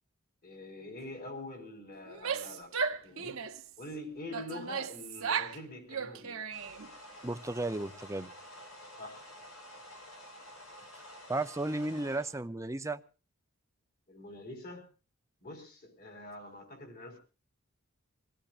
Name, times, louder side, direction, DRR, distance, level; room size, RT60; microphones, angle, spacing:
voice 1, 0.4-3.4 3.8-6.4 9.0-9.3 14.1-14.9 15.4-17.2, left 1 dB, 45° left, 4.6 m, -45 dB
Female speech woman speaking / Yell, 2.1-3.7 4.3-5.6 5.9-6.9, right 6 dB, 70° right, 1.1 m, -35 dB
sound 1, 6.5-12.4, equal, 85° left, 6.0 m, -50 dB
voice 2, 7.2-8.3 11.3-13.0, right 2 dB, 15° right, 0.7 m, -34 dB
25.5 x 17.5 x 2.5 m
head